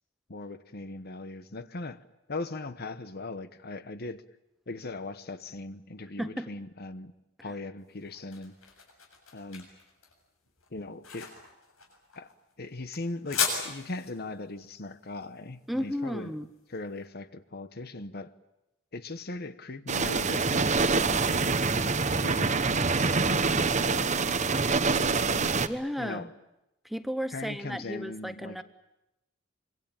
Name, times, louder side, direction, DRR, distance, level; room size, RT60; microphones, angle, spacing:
voice 1, 0.3-2.0 2.3-4.2 4.7-7.1 7.4-8.5 9.3-9.7 10.7-11.3 12.1-12.3 12.6-16.4 16.7-18.3 18.9-24.4 24.8-25.7 26.0-26.3 27.3-28.6, left 2 dB, 50° left, 1.1 m, -39 dB
voice 2, 6.2-6.5 15.7-16.5 25.6-26.3 26.8-28.6, equal, ahead, 0.9 m, -33 dB
sound 1, 7.8-16.8, left 6 dB, 85° left, 7.4 m, -37 dB
sound 2, 19.9-25.7, right 4 dB, 35° right, 1.0 m, -25 dB
25.5 x 23.5 x 8.9 m
head